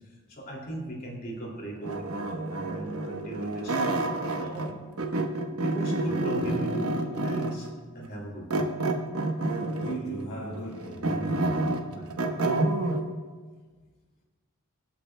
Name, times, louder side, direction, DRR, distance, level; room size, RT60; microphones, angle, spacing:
voice 1, 0.3-4.8 5.6-7.7 7.9-8.7 11.9-12.1, right 1 dB, 40° left, -1 dB, 2.5 m, -38 dB
sound 1, 1.8-4.7 5.0-7.7 8.5-10.1 10.5-13.0, right 2 dB, 80° right, 1.0 m, -28 dB
voice 2, 6.0-6.5 9.7-11.9, right 2 dB, 60° left, -6 dB, 1.6 m, -38 dB
24.5 x 8.4 x 2.2 m, 1.4 s
head